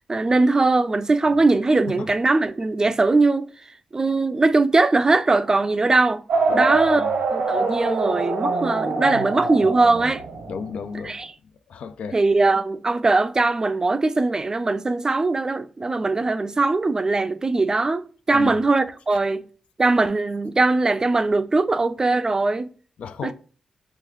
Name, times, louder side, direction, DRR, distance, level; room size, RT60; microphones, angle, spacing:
voice 1, 0.1-3.5 3.9-6.2 6.5-7.0 7.3-10.2 11.0-11.3 12.1-19.4 19.8-22.7 23.2-23.3, right 3 dB, 30° right, 0.4 m, -20 dB
sound 1, 6.3-10.8, right 3 dB, 85° right, 0.9 m, -24 dB
voice 2, 6.5-7.1 10.5-11.2 11.7-12.2 18.3-18.6 23.0-23.3, left 5 dB, 75° left, 0.3 m, -33 dB
3.8 x 2.3 x 3.0 m
cardioid pair, 55°, 2 cm